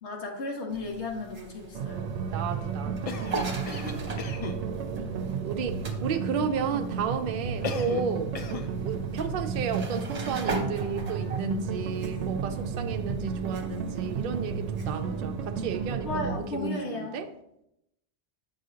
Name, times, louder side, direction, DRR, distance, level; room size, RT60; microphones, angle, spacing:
voice 1, 0.0-2.1 3.7-4.1 16.0-17.1, left 3 dB, 80° left, 1.4 m, -35 dB
sound 1, 0.7-16.7, right 3 dB, 40° right, 1.0 m, -41 dB
sound 2, 1.7-16.4, right 6 dB, 90° right, 0.9 m, -33 dB
voice 2, 2.3-3.2 3.9-4.2 5.0-5.1 5.4-8.3 8.8-17.3, right 5 dB, 60° right, 0.6 m, -32 dB
Cough, 3.1-4.6 7.6-8.1 8.4-8.7, left 5 dB, 50° left, 0.4 m, -35 dB
7.4 x 5.5 x 2.8 m
omnidirectional pair, 1.1 m